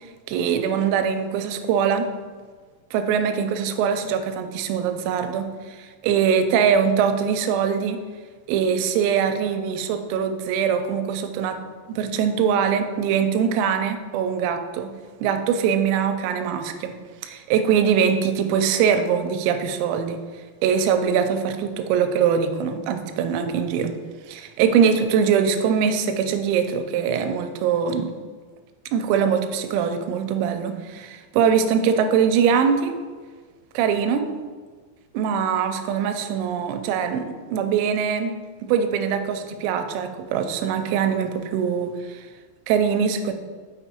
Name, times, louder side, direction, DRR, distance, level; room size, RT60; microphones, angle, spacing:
voice 1, 0.3-2.1 2.9-8.0 8.5-11.6 11.9-14.9 15.2-17.0 17.2-20.2 20.6-23.9 24.3-28.1 28.9-32.9 33.7-34.3 35.1-38.4 38.6-42.2 42.7-43.3, right 7 dB, 85° right, 7 dB, 3.2 m, -22 dB
6.9 x 6.1 x 2.9 m, 1.5 s
omnidirectional pair, 6.0 m